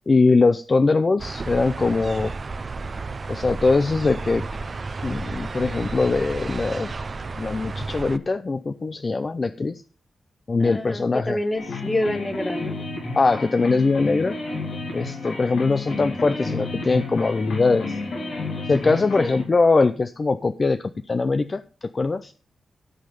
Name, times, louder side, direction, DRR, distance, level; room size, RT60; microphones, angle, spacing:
voice 1, 0.1-2.3 3.3-4.4 5.0-6.9 7.4-9.8 10.5-11.4 13.1-14.4 14.9-18.0 18.7-22.3, left 3 dB, 35° left, 11 dB, 0.5 m, -21 dB
sound 1, 1.2-8.2, right 3 dB, 40° right, 0.7 m, -32 dB
voice 2, 10.6-12.7 19.2-19.4, left 1 dB, 15° left, 11 dB, 1.1 m, -27 dB
sound 2, 11.5-19.4, left 3 dB, 85° left, 3.2 m, -31 dB
13.5 x 5.7 x 5.2 m, 0.36 s
wide cardioid pair, 125°, 0 cm